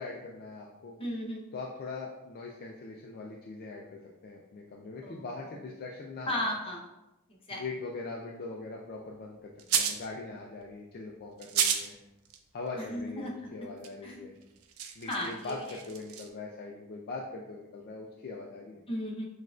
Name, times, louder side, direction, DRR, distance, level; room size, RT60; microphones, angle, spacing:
voice 1, 0.0-1.0 1.5-6.4 7.5-12.0 12.5-14.4 15.0-18.8, left 3 dB, 45° left, -1 dB, 0.3 m, -41 dB
voice 2, 1.0-1.5 5.0-5.2 6.3-6.8 7.5-7.6 12.8-13.3 14.0-14.2 15.0-15.8 18.9-19.3, left 1 dB, 25° left, -2 dB, 0.7 m, -35 dB
sound 1, 9.6-10.1 11.4-11.9 12.2-12.4 13.8-13.9 14.4-16.3, right 8 dB, 75° right, 0.4 m, -31 dB
6.3 x 2.4 x 2.4 m, 0.99 s
head